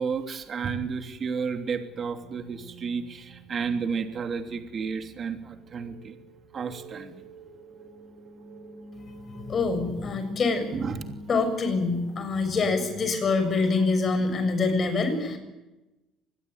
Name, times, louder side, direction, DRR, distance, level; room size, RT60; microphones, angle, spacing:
voice 1, 0.0-6.2 6.5-7.2 10.7-11.1, right 5 dB, 35° right, 6 dB, 3.0 m, -32 dB
sound 1, 1.9-13.3, right 1 dB, 60° right, 6.7 m, -46 dB
voice 2, 9.3-10.7 11.3-15.4, left 4 dB, 35° left, 8 dB, 7.1 m, -25 dB
26.0 x 20.5 x 9.6 m, 1.0 s
cardioid pair, 140°, 0 cm